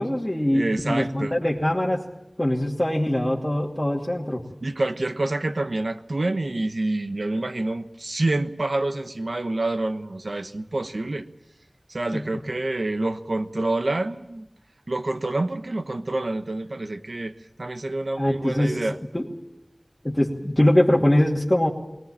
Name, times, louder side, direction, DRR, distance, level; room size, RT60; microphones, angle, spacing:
voice 1, 0.0-2.1 2.4-4.4 12.1-12.2 18.2-18.8 19.1-19.3 20.0-21.7, left 1 dB, 20° left, -3 dB, 2.6 m, -22 dB
voice 2, 0.5-1.3 4.6-11.3 11.9-14.5 14.9-19.0, right 2 dB, 85° right, 9 dB, 1.1 m, -27 dB
20.5 x 19.5 x 8.7 m, 0.90 s
wide cardioid pair, 45°, 0 cm